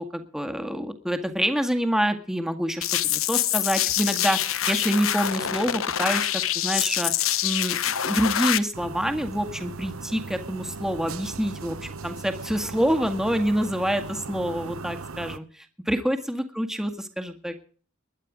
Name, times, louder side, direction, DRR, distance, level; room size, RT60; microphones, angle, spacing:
voice 1, 0.0-6.3 6.6-7.1 7.4-7.8 8.0-17.5, equal, ahead, 6 dB, 1.9 m, -27 dB
sound 1, 2.8-8.6, left 11 dB, 70° left, 1.0 m, -25 dB
sound 2, 8.7-15.4, right 4 dB, 80° right, 0.9 m, -38 dB
21.0 x 11.5 x 5.1 m, 0.43 s
head